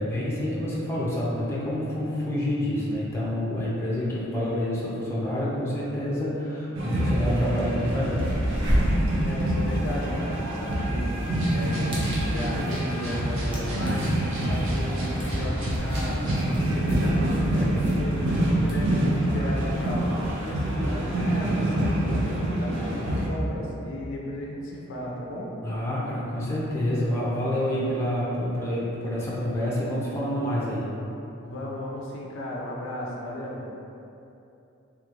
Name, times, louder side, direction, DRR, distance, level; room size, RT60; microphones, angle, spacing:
voice 1, 0.0-8.3 25.6-30.9, left 1 dB, 15° left, -7 dB, 0.5 m, -28 dB
sound 1, 6.7-23.3, right 1 dB, 65° right, 0.5 m, -26 dB
sound 2, 6.9-7.0 7.3-20.7, equal, 25° right, 0.7 m, -33 dB
voice 2, 9.2-11.1 11.5-14.1 14.4-20.2 20.4-25.5 31.4-33.6, left 1 dB, 65° left, -2 dB, 0.4 m, -35 dB
sound 3, 11.3-16.4, right 1 dB, 85° right, 0.9 m, -41 dB
3.1 x 3.0 x 2.4 m, 2.8 s
head